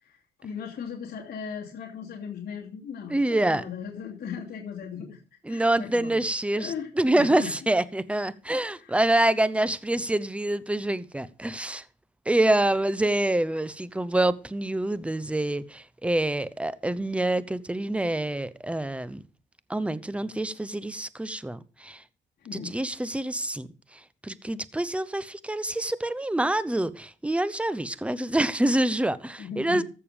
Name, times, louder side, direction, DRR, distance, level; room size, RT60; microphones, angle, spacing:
voice 1, 0.0-5.2 5.5-6.2 6.5-7.5 8.8-9.0 22.4-22.7 29.4-29.8, left 7 dB, 55° left, 2.8 m, -37 dB
voice 2, 3.1-3.6 5.4-11.8 12.3-19.2 19.7-22.0 22.5-23.7 24.2-29.8, right 1 dB, 5° right, 0.8 m, -26 dB
14.5 x 6.8 x 5.1 m
cardioid pair, 90°, 20 cm